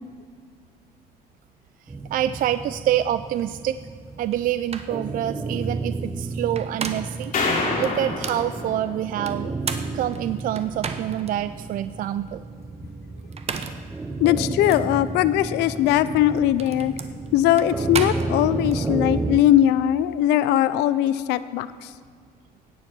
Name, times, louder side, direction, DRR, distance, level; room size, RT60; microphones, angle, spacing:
sound 1, 1.9-19.4, right 3 dB, 15° right, 0.7 m, -32 dB
voice 1, 2.1-3.8 4.2-9.5 9.9-12.4, right 12 dB, 55° right, 12 dB, 0.4 m, -26 dB
sound 2, 4.3-4.4 4.7-5.0 6.4-7.3 7.8-8.5 9.3-11.3 11.8-11.9 13.2-13.9 14.7-14.8 16.1-18.8, right 6 dB, 40° right, 1.0 m, -33 dB
sound 3, 7.3-9.7, left 3 dB, 50° left, 3.0 m, -27 dB
voice 2, 14.2-16.9 17.3-21.9, left 12 dB, 90° left, 15 dB, 0.5 m, -20 dB
17.5 x 7.0 x 6.1 m, 2.1 s
cardioid pair, 110°, 17 cm